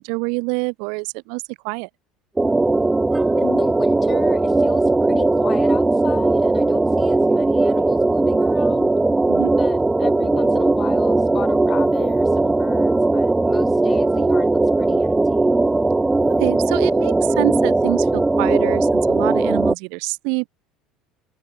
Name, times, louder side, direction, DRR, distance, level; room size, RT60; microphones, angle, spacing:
voice 1, 0.0-1.9 9.3-9.5 16.4-20.5, right 37 dB, 75° right, 1.2 m, -26 dB
sound 1, 2.4-19.7, right 2 dB, 10° right, 1.3 m, -18 dB
voice 2, 3.4-8.9 9.6-15.5, left 7 dB, 30° left, 4.4 m, -34 dB
supercardioid pair, 115°, 0 cm